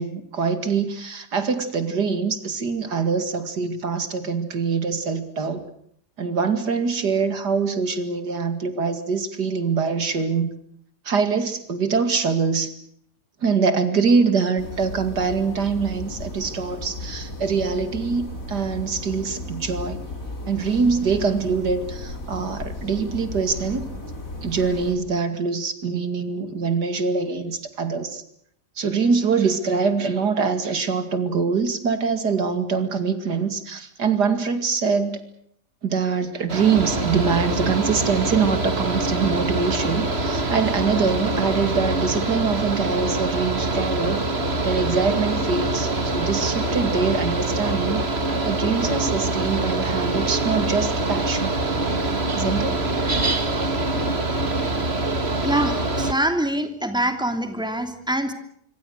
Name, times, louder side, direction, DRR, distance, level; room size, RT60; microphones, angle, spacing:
voice 1, 0.0-5.7 6.2-10.5 11.0-12.7 13.4-20.0 20.5-23.9 24.4-28.2 28.8-35.2 35.8-44.3 44.6-48.0 48.4-51.5 52.3-52.8, right 5 dB, 80° right, 10 dB, 2.9 m, -24 dB
sound 1, 14.6-25.0, left 1 dB, 55° left, 5.1 m, -35 dB
Mechanical fan, 36.5-56.1, right 2 dB, 40° right, 2.6 m, -24 dB
voice 2, 55.4-58.3, right 1 dB, 5° right, 7 dB, 2.8 m, -24 dB
25.5 x 25.5 x 6.5 m, 0.69 s
omnidirectional pair, 1.7 m